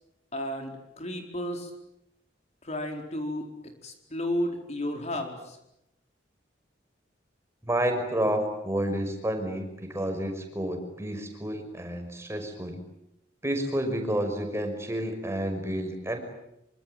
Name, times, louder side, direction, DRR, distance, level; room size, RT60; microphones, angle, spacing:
voice 1, 0.3-1.7 2.6-3.5 3.8-5.6, left 1 dB, 40° left, 4 dB, 4.6 m, -32 dB
voice 2, 7.7-12.8 13.4-16.2, right 1 dB, 15° right, 5 dB, 5.7 m, -30 dB
26.0 x 25.0 x 9.0 m, 0.84 s
head